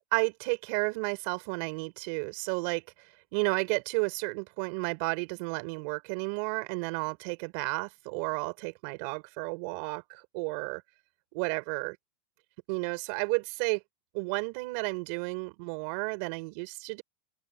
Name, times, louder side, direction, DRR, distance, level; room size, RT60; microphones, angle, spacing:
voice 1, 0.1-2.8 3.3-10.8 11.3-12.0 12.7-13.8 14.1-17.0, right 29 dB, 40° right, 4.9 m, -32 dB
open air
supercardioid pair, 180°, 0 cm